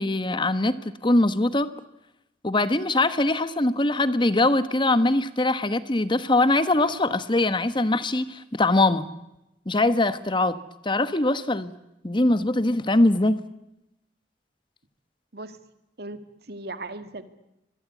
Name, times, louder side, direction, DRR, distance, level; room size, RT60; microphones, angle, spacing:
voice 1, 0.0-1.7 2.4-9.1 9.7-10.6 10.8-11.7 12.0-13.4, left 2 dB, 25° left, 13 dB, 1.2 m, -22 dB
voice 2, 16.0-17.2, right 2 dB, 60° right, 10 dB, 2.1 m, -37 dB
25.5 x 22.5 x 8.3 m, 0.87 s
head